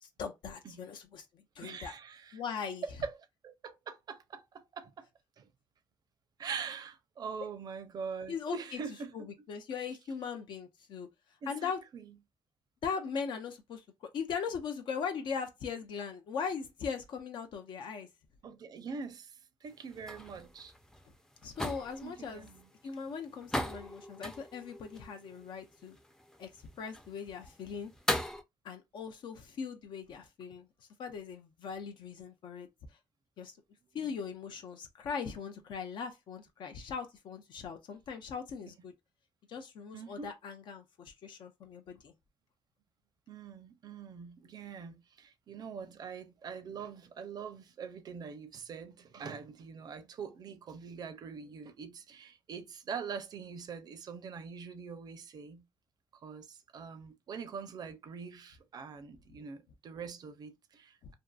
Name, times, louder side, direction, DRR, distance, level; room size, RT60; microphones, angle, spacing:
voice 1, 0.0-2.0 2.3-2.8 8.3-8.8 9.1-11.1 11.5-11.8 12.8-18.1 21.4-22.5 22.8-26.0 26.4-27.9 28.6-30.7 31.0-32.7 33.4-33.6 33.9-38.9 39.5-42.1, left 6 dB, 70° left, 0.4 m, -40 dB
voice 2, 1.6-2.4 3.0-3.1 3.4-4.9 5.4-5.5 6.4-9.1 11.4-12.0 18.4-20.7 22.0-22.6 34.0-34.1 39.9-40.3 43.3-55.6 56.2-61.1, right 6 dB, 55° right, 0.5 m, -43 dB
sound 1, 19.7-28.4, left 1 dB, 5° left, 0.4 m, -40 dB
2.6 x 2.4 x 2.3 m
cardioid pair, 95°, 8 cm